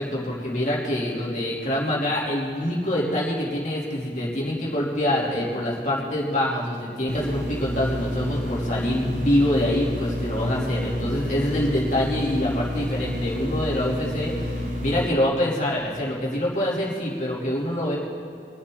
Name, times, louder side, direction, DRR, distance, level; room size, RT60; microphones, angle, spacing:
voice 1, 0.0-18.0, left 1 dB, 45° left, -6 dB, 3.3 m, -25 dB
sound 1, 7.1-15.1, left 1 dB, 45° right, 1.6 m, -29 dB
25.0 x 8.8 x 4.0 m, 2.6 s
head